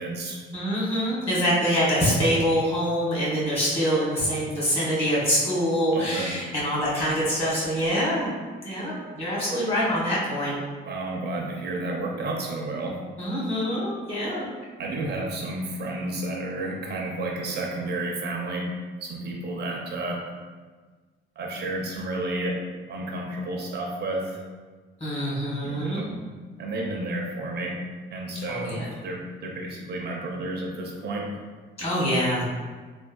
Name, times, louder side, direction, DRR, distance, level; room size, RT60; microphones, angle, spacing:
voice 1, 0.0-0.4 5.9-6.5 10.9-13.0 14.8-18.7 19.0-20.2 21.4-22.6 22.9-24.4 25.6-26.2 26.6-27.8 28.1-28.8 29.0-31.4, right 2 dB, 55° right, 0 dB, 0.5 m, -31 dB
voice 2, 0.5-8.3 8.6-10.5 13.2-14.4 25.0-26.0 28.5-28.9 31.8-32.4, equal, 30° left, -7 dB, 1.5 m, -25 dB
3.4 x 2.2 x 2.2 m, 1.4 s
cardioid pair, 90°, 20 cm